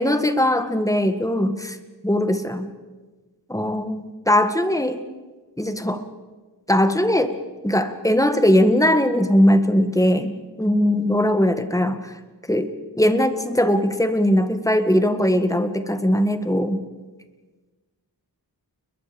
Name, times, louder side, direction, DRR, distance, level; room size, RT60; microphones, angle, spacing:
voice 1, 0.0-1.8 2.0-2.7 3.5-5.1 5.6-6.0 6.7-7.3 7.6-10.3 10.6-12.1 12.5-12.7 13.0-16.8, left 1 dB, 10° left, 8 dB, 1.8 m, -20 dB
29.5 x 22.0 x 5.3 m, 1.3 s
wide cardioid pair, 50°, 41 cm